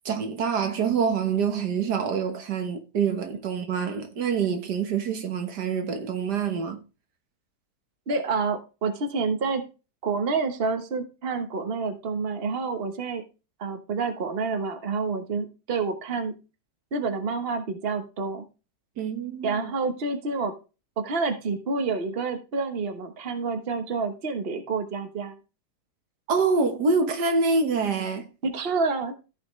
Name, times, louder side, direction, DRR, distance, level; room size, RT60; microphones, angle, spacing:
voice 1, 0.1-6.8 19.0-19.7 26.3-28.3, right 5 dB, 80° right, 1.9 m, -26 dB
voice 2, 8.1-9.6 10.0-13.2 13.6-16.3 16.9-18.4 19.4-20.5 21.0-25.3 28.4-29.1, right 4 dB, 40° right, 1.4 m, -28 dB
15.0 x 5.8 x 3.2 m
omnidirectional pair, 1.8 m